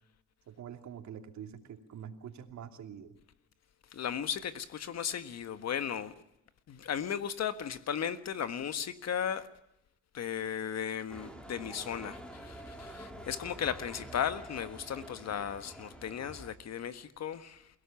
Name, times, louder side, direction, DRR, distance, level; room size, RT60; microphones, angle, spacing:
voice 1, 0.5-3.2, right 8 dB, 70° right, 2.9 m, -45 dB
voice 2, 3.9-6.1 6.7-9.5 10.1-17.7, left 8 dB, 60° left, 1.6 m, -36 dB
sound 1, 11.1-16.5, equal, 5° left, 3.8 m, -47 dB
28.5 x 17.0 x 7.2 m
cardioid pair, 90°, 30 cm